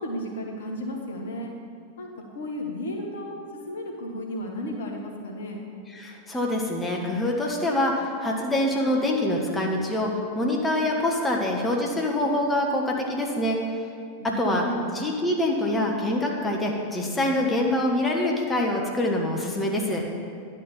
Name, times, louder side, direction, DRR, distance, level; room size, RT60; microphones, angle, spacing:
voice 1, 0.0-1.5 2.0-3.3 3.7-5.6 14.2-14.9, left 1 dB, 60° left, 1 dB, 1.3 m, -33 dB
voice 2, 5.9-10.1 10.3-13.9 14.4-14.6 14.9-20.0, left 1 dB, 15° left, -1 dB, 1.2 m, -25 dB
10.5 x 4.5 x 6.9 m, 2.4 s
figure-of-eight pair, 90°, 0 cm